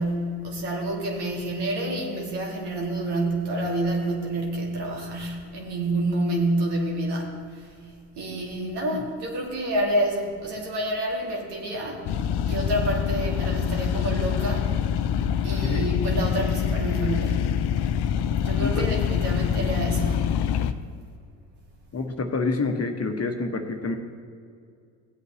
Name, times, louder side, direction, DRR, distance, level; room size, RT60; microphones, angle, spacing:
voice 1, 0.0-7.7 8.2-12.1 12.5-14.9 15.4-17.4 18.4-20.3, right 1 dB, 70° right, -1 dB, 2.4 m, -28 dB
sound 1, 12.1-20.7, left 8 dB, 65° left, 0.7 m, -25 dB
voice 2, 21.9-23.9, left 3 dB, 35° left, 4 dB, 1.3 m, -27 dB
16.0 x 8.1 x 3.2 m, 2.3 s
hypercardioid pair, 60°, 43 cm